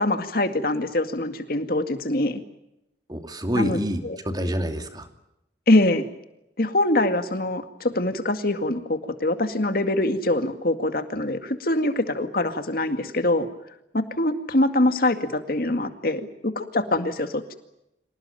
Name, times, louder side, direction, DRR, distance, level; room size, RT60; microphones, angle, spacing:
voice 1, 0.0-2.4 3.5-3.8 4.0-4.2 5.7-6.0 6.6-13.5 13.9-17.5, left 1 dB, 55° left, 8 dB, 2.2 m, -24 dB
voice 2, 3.1-5.1, equal, 25° right, 6 dB, 2.6 m, -27 dB
26.5 x 18.0 x 9.2 m, 0.85 s
head